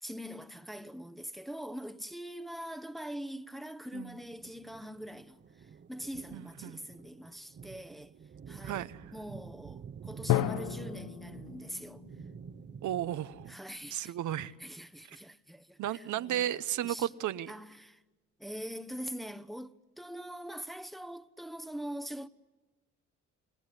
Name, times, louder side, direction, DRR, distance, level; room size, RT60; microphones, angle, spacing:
voice 1, 0.0-8.1 8.5-12.1 13.5-14.2 14.6-16.5 16.8-17.1 17.5-18.0 18.4-22.3, equal, ahead, 1.0 m, -43 dB
sound 1, 4.1-13.5, right 7 dB, 35° right, 0.8 m, -49 dB
voice 2, 6.3-6.8 8.6-9.0 12.8-13.5 13.9-14.5 15.8-17.5, right 12 dB, 75° right, 0.9 m, -34 dB
Drum, 10.3-14.0, left 13 dB, 80° left, 1.0 m, -35 dB
29.5 x 20.0 x 9.9 m
cardioid pair, 90°, 30 cm